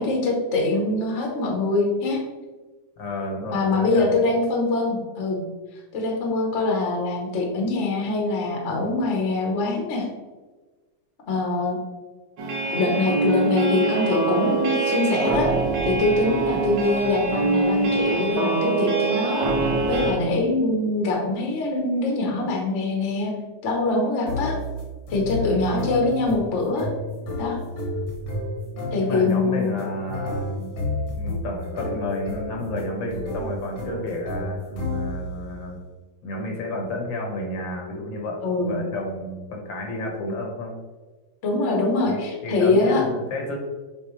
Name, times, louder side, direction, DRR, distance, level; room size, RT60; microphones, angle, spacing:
voice 1, 0.0-2.2 3.5-5.4 5.9-10.1 11.3-11.8 12.7-15.5 15.9-19.5 19.9-23.3 23.6-24.6 25.1-26.9 27.4-27.6 28.9-29.8 38.4-38.8 41.4-43.0, left 2 dB, 40° left, 0 dB, 1.2 m, -23 dB
voice 2, 3.0-4.1 25.4-25.9 29.0-30.7 31.1-35.8 36.2-40.8 42.1-43.6, left 1 dB, 65° left, 1 dB, 1.7 m, -31 dB
sound 1, 12.4-20.1, right 3 dB, 60° right, 1.5 m, -24 dB
sound 2, 24.3-35.4, left 2 dB, 80° left, 2.2 m, -31 dB
7.4 x 4.0 x 3.2 m, 1.3 s
omnidirectional pair, 2.3 m